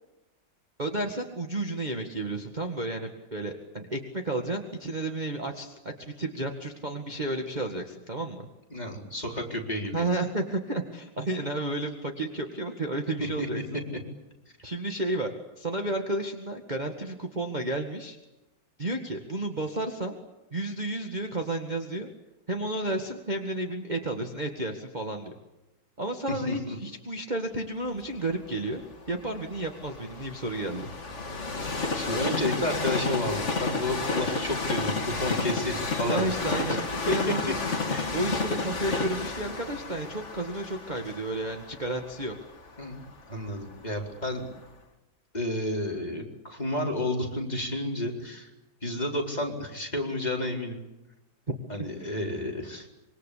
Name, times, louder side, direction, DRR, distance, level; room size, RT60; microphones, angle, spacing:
voice 1, 0.8-8.5 9.9-13.6 14.6-18.2 18.8-20.2 20.5-22.1 22.5-25.3 26.0-30.9 36.1-36.8 37.1-37.6 38.1-42.4 51.8-52.1, right 2 dB, 20° right, 2 dB, 2.0 m, -32 dB
voice 2, 8.7-10.1 13.4-13.5 26.3-26.8 31.9-36.3 37.1-37.2 37.5-37.6 37.9-38.2 42.8-43.0 43.3-44.5 45.3-48.5 48.8-50.8 51.7-52.9, left 1 dB, 20° left, 0 dB, 4.6 m, -31 dB
Train, 28.0-44.0 44.5-44.6, left 3 dB, 35° left, 2.5 m, -32 dB
26.0 x 24.0 x 8.5 m, 0.99 s
omnidirectional pair, 2.2 m